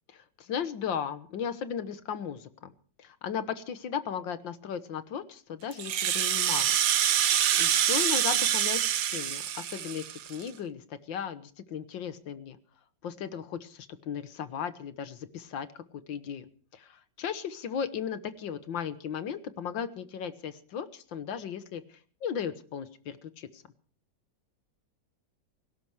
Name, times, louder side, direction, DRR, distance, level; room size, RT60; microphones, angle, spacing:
voice 1, 0.1-2.7 3.0-6.8 7.2-10.8 11.1-12.6 13.0-16.5 16.7-21.8 22.2-23.5, left 8 dB, 80° left, 12 dB, 1.9 m, -36 dB
Rattle (instrument), 5.7-10.5, right 10 dB, 80° right, 1.7 m, -26 dB
18.0 x 16.5 x 4.8 m, 0.44 s
omnidirectional pair, 2.0 m